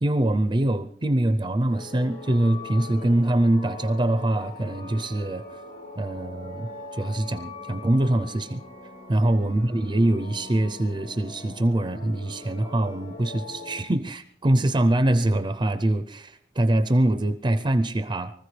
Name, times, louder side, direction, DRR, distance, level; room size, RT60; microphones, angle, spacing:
voice 1, 0.0-5.4 6.0-8.6 9.1-18.3, right 1 dB, 25° right, 9 dB, 0.5 m, -24 dB
sound 1, 1.7-13.8, left 3 dB, 80° left, 4.5 m, -42 dB
24.5 x 14.5 x 3.3 m, 0.69 s
head